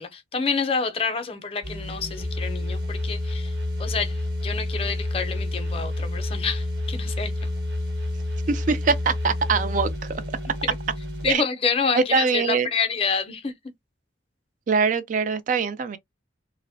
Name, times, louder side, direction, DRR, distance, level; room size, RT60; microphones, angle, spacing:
voice 1, 0.0-3.5 3.8-7.3 11.2-13.5, left 5 dB, 30° left, 0.5 m, -28 dB
sound 1, 1.6-11.3, left 1 dB, 60° right, 1.0 m, -29 dB
voice 2, 8.5-10.2 11.3-11.4 11.9-12.7 14.7-16.0, right 5 dB, 45° right, 0.3 m, -23 dB
2.9 x 2.1 x 2.6 m
head